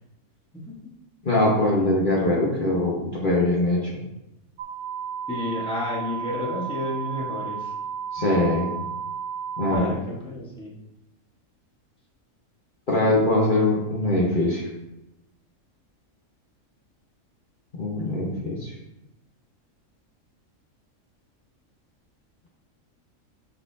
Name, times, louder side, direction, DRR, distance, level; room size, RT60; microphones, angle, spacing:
voice 1, 1.2-4.0 8.1-8.7 9.6-10.0 12.9-14.7 17.8-18.7, left 1 dB, 40° left, -5 dB, 1.3 m, -22 dB
sound 1, 4.6-9.7, right 7 dB, 65° right, 0.9 m, -33 dB
voice 2, 5.3-7.7 9.7-10.7, left 2 dB, 5° left, -5 dB, 1.3 m, -31 dB
11.5 x 4.1 x 2.8 m, 0.92 s
omnidirectional pair, 1.4 m